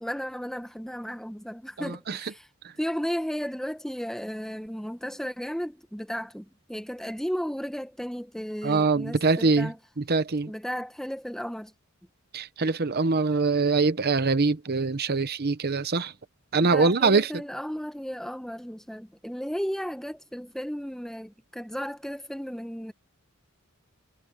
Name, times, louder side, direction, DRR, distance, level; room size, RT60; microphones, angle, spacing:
voice 1, 0.0-2.5 2.8-9.8 10.5-11.7 16.6-22.9, equal, ahead, 1.1 m, -34 dB
voice 2, 1.8-2.2 2.6-2.7 8.6-9.7 10.0-10.5 12.3-16.1 16.5-17.3, right 4 dB, 45° right, 0.9 m, -23 dB
head